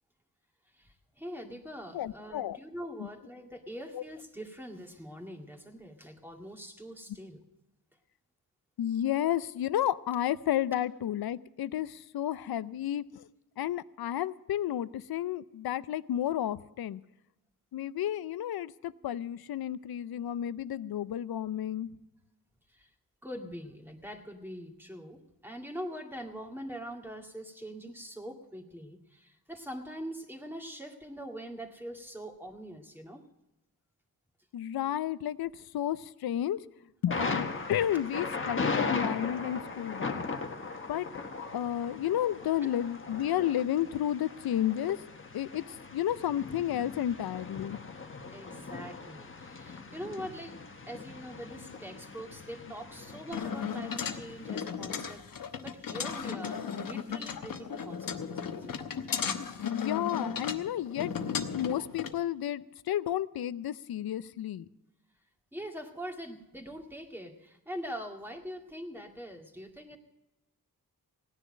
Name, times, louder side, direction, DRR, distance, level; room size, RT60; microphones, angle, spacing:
voice 1, 0.8-7.4 22.7-22.9 23.2-33.2 42.6-42.7 48.3-50.6 50.9-58.9 65.5-70.0, equal, 5° right, 2 dB, 2.0 m, -43 dB
voice 2, 1.9-2.6 3.0-3.1 3.9-4.0 8.8-13.3 13.6-17.0 17.7-21.9 34.5-36.6 37.0-40.2 40.9-41.1 41.5-45.0 45.3-47.9 59.6-64.7, left 11 dB, 85° left, 17 dB, 0.6 m, -32 dB
Thunder, 37.1-54.6, left 4 dB, 35° left, 1.3 m, -38 dB
sound 1, 53.3-62.1, left 7 dB, 65° left, 1.1 m, -35 dB
17.0 x 10.0 x 6.4 m, 0.98 s
wide cardioid pair, 100°, 36 cm